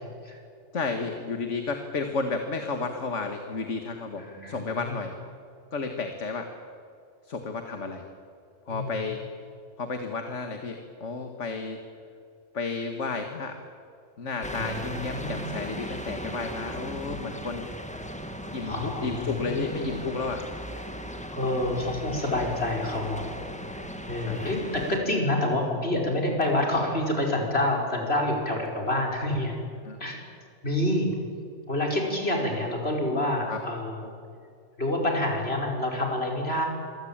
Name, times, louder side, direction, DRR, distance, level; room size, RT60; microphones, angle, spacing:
voice 1, 0.7-5.1 5.7-6.5 7.2-8.0 8.7-9.2 9.8-11.8 12.5-13.6 14.2-17.7 18.5-20.4 24.2-24.6 29.9-30.0 33.5-33.6, left 4 dB, 70° left, 5 dB, 2.1 m, -32 dB
voice 2, 4.2-5.0 8.7-9.0 14.6-15.4 18.7-20.0 21.3-23.3 24.1-29.6 30.0-30.2 30.6-31.1 31.7-34.1 34.8-36.7, left 1 dB, 55° left, 0 dB, 5.6 m, -28 dB
sound 1, 14.4-25.0, equal, 5° left, 2.0 m, -37 dB
26.5 x 24.0 x 8.9 m, 2.4 s
omnidirectional pair, 1.3 m